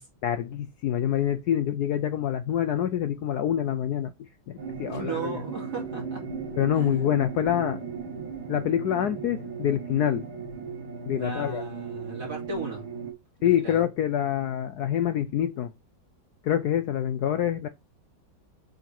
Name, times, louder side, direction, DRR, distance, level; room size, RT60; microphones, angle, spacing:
voice 1, 0.2-5.4 6.6-7.8 8.5-10.3 11.0-11.6 13.4-15.7 16.4-17.7, left 10 dB, 70° left, 1.0 m, -26 dB
sound 1, 4.6-13.1, right 5 dB, 85° right, 2.9 m, -36 dB
voice 2, 4.9-6.2 6.7-7.1 11.2-12.8 13.4-13.8, right 3 dB, 50° right, 4.0 m, -36 dB
8.1 x 3.8 x 4.5 m
omnidirectional pair, 2.1 m